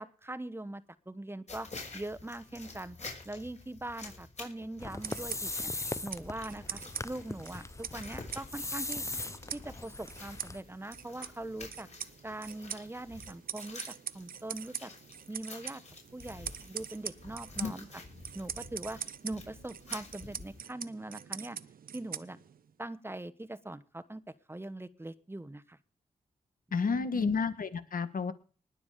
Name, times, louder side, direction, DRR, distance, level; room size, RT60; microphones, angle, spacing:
voice 1, 0.0-1.7 1.9-3.0 3.2-5.7 6.0-9.0 9.5-11.9 12.2-14.9 15.3-15.8 16.1-18.0 18.3-21.6 21.9-22.4 22.8-24.2 24.5-25.8 26.7-27.4, right 1 dB, 15° right, 12 dB, 1.0 m, -42 dB
sound 1, 1.5-20.6, left 3 dB, 50° left, 6.1 m, -50 dB
sound 2, 4.8-10.6, left 2 dB, 20° left, 0.7 m, -40 dB
sound 3, 4.9-22.7, right 8 dB, 75° right, 0.7 m, -44 dB
voice 2, 26.7-28.3, left 5 dB, 70° left, 11 dB, 1.5 m, -31 dB
20.0 x 7.1 x 5.0 m, 0.39 s
cardioid pair, 65°, 15 cm